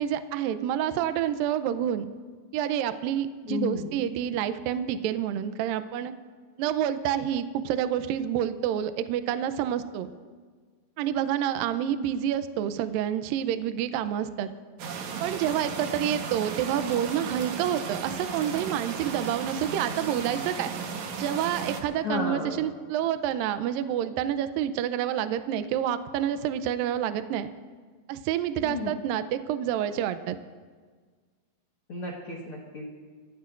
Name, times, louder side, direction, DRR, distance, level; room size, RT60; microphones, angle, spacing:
voice 1, 0.0-2.1 2.5-6.1 6.6-10.1 11.0-14.5 15.2-20.7 21.2-27.5 28.1-30.4, right 10 dB, 85° right, 10 dB, 2.0 m, -28 dB
voice 2, 3.5-3.9 22.0-22.7 28.6-28.9 31.9-32.9, left 4 dB, 65° left, -2 dB, 1.3 m, -33 dB
sound 1, 14.8-21.8, right 6 dB, 65° right, 1.9 m, -35 dB
26.5 x 15.5 x 2.5 m, 1.5 s
omnidirectional pair, 4.8 m